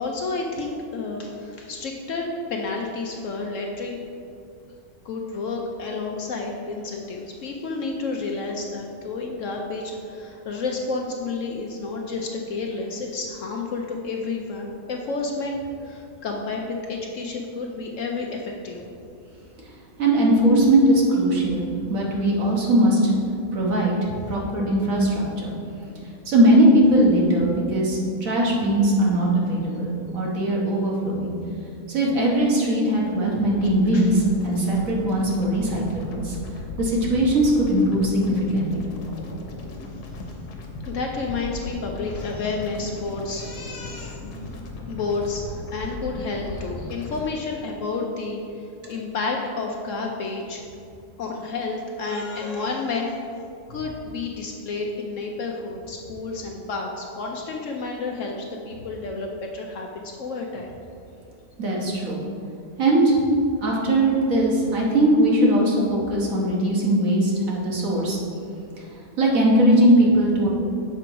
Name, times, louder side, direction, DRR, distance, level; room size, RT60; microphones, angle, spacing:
voice 1, 0.0-4.0 5.0-18.8 33.9-34.1 40.9-44.6 44.9-50.6 51.2-53.3 53.7-60.8, left 3 dB, 65° left, 1 dB, 0.9 m, -30 dB
voice 2, 20.0-23.1 23.5-25.5 26.2-31.3 31.9-36.3 36.8-38.9 61.6-62.2 62.8-63.2 63.6-68.2 69.2-70.5, right 1 dB, 60° right, -3 dB, 1.5 m, -20 dB
sound 1, 33.6-47.3, left 2 dB, 80° left, 1.4 m, -37 dB
6.8 x 5.1 x 4.5 m, 2.5 s
omnidirectional pair, 1.7 m